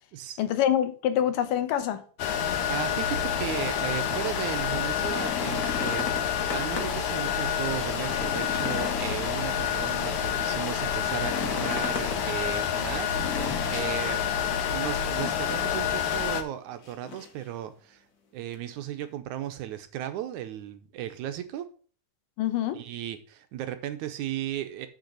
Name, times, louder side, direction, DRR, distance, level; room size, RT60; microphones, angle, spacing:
voice 1, 0.4-2.0 22.4-22.8, left 10 dB, 85° left, 2.5 m, -25 dB
sound 1, 2.2-16.4, left 8 dB, 70° left, 1.4 m, -28 dB
voice 2, 2.7-6.1 6.5-14.3 14.7-18.0 18.3-21.7 22.7-24.9, right 11 dB, 75° right, 2.0 m, -35 dB
sound 2, 5.0-7.1 7.5-7.6 8.0-9.9 11.1-12.2 13.1-14.0 15.2-15.8 16.1-16.3 16.8-17.4 18.5-18.6, left 5 dB, 50° left, 1.1 m, -36 dB
6.6 x 6.0 x 6.4 m
omnidirectional pair, 3.7 m